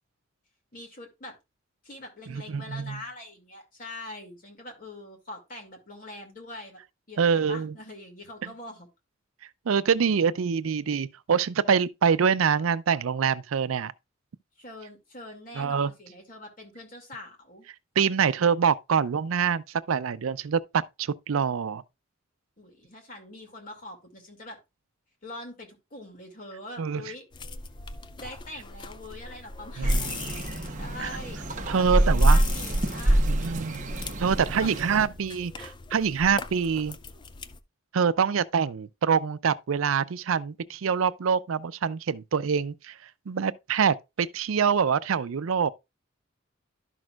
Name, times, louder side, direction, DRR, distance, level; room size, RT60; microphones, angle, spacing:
voice 1, 0.7-1.3 1.8-6.8 7.1-8.9 14.6-17.7 22.6-24.6 25.2-27.2 28.2-30.4 30.8-33.3 34.2-34.3 34.6-35.1, left 2 dB, 40° left, 2.4 m, -43 dB
voice 2, 2.3-3.0 7.2-7.7 8.4-8.5 9.7-13.9 15.5-15.9 18.0-21.8 26.8-27.0 29.8-30.0 31.0-31.1 31.7-32.4 33.3-33.8 34.2-37.0 37.9-43.0 43.3-45.7, right 6 dB, 85° right, 0.5 m, -25 dB
sound 1, 27.3-37.6, left 4 dB, 25° left, 0.4 m, -41 dB
sound 2, 29.8-35.1, right 1 dB, 40° right, 0.9 m, -25 dB
11.5 x 6.2 x 2.4 m
head